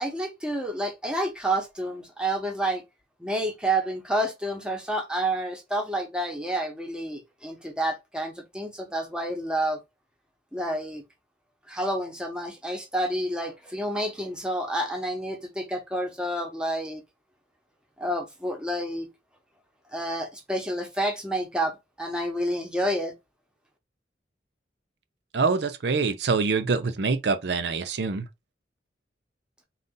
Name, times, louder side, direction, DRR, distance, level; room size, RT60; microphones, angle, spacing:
voice 1, 0.0-2.8 3.2-9.8 10.5-11.0 11.7-17.0 18.0-19.1 19.9-23.1, right 1 dB, 5° right, 1.0 m, -29 dB
voice 2, 25.3-28.3, right 4 dB, 60° right, 0.5 m, -25 dB
3.9 x 2.4 x 3.7 m
head